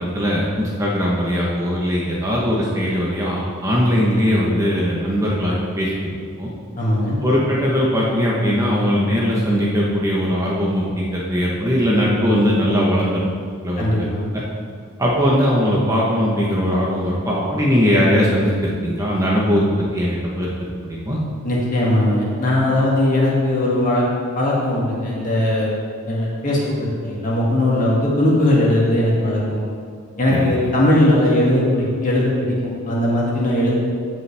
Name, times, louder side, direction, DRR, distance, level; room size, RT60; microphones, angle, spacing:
voice 1, 0.1-5.9 6.4-6.5 7.2-13.2 13.6-14.1 14.3-14.4 15.0-19.6 19.9-20.5 20.8-21.2 30.3-30.7, equal, 15° right, -5 dB, 1.0 m, -20 dB
voice 2, 6.8-7.2 13.8-14.2 21.4-24.0 24.4-25.7 26.1-29.6 30.2-32.5 32.8-33.7, left 1 dB, 40° left, -5 dB, 2.1 m, -19 dB
15.5 x 5.5 x 3.4 m, 2.1 s
head